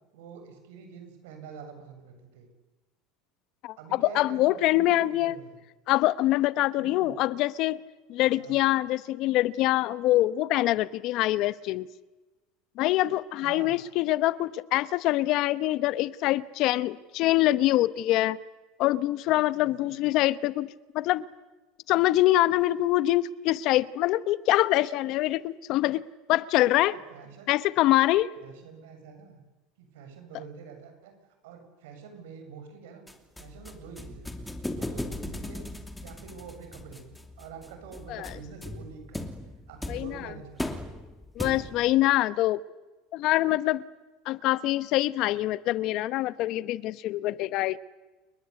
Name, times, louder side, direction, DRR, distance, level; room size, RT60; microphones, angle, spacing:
voice 1, 0.1-2.5 3.8-5.6 6.8-7.1 8.3-8.6 13.4-13.8 19.6-20.1 26.6-27.5 28.4-29.4 29.8-31.1 31.4-33.0 33.4-34.5 34.7-35.7 36.0-37.1 37.4-39.3 39.7-40.9, right 6 dB, 85° right, 7.6 m, -46 dB
voice 2, 3.6-5.4 5.9-7.8 8.1-11.9 12.8-18.4 18.8-21.3 21.9-27.0 27.5-28.3 38.1-38.3 39.9-40.1 41.4-42.6 43.1-43.9 44.3-47.8, left 16 dB, 55° left, 0.9 m, -25 dB
sound 1, 33.1-41.9, left 1 dB, 5° left, 2.8 m, -38 dB
29.5 x 22.0 x 8.3 m
supercardioid pair, 135°, 0 cm